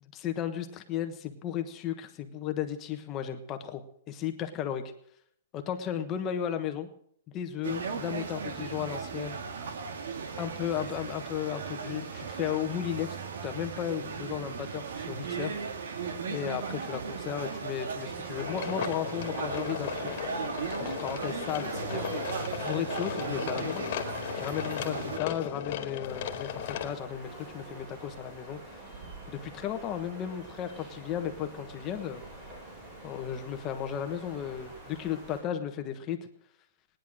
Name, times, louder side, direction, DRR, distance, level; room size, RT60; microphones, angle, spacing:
voice 1, 0.2-4.8 5.5-6.9 7.3-9.4 10.4-13.1 13.4-15.6 16.3-20.2 20.8-22.2 22.6-23.9 24.3-28.6 29.3-32.2 33.0-36.2, left 9 dB, 20° left, 6 dB, 1.2 m, -34 dB
sound 1, 7.6-25.2, right 5 dB, 85° right, 2.0 m, -37 dB
sound 2, 18.3-26.9, left 10 dB, 40° left, 1.9 m, -36 dB
sound 3, 26.1-35.4, right 2 dB, 30° right, 6.7 m, -47 dB
19.0 x 10.5 x 6.3 m, 0.65 s
hypercardioid pair, 170°, 0 cm